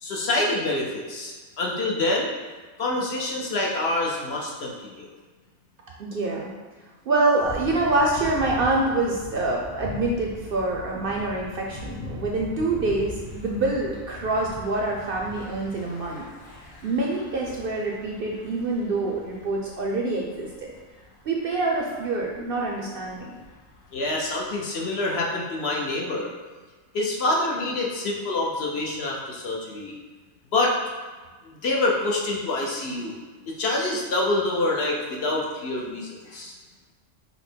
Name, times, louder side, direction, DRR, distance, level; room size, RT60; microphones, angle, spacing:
voice 1, 0.0-2.3 2.8-5.1 23.9-26.3 26.9-29.9 30.5-30.7 31.6-33.1 33.6-36.5, left 2 dB, 60° left, -2 dB, 0.9 m, -26 dB
voice 2, 6.0-6.5 7.1-16.3 16.8-20.7 21.2-23.3, right 2 dB, 60° right, -1 dB, 0.6 m, -26 dB
Thunder / Bicycle, 7.4-24.5, left 2 dB, 80° left, 1.4 m, -42 dB
5.5 x 2.1 x 4.4 m, 1.4 s
omnidirectional pair, 1.3 m